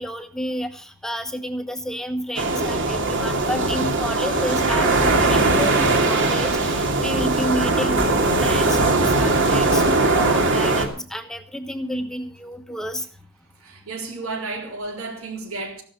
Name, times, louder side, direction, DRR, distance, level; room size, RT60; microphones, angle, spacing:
voice 1, 0.0-13.1, equal, 5° left, 1.1 m, -30 dB
sound 1, 2.4-10.9, right 2 dB, 60° right, 2.6 m, -20 dB
voice 2, 13.6-15.8, right 3 dB, 80° right, 4.0 m, -32 dB
14.5 x 12.5 x 5.7 m
head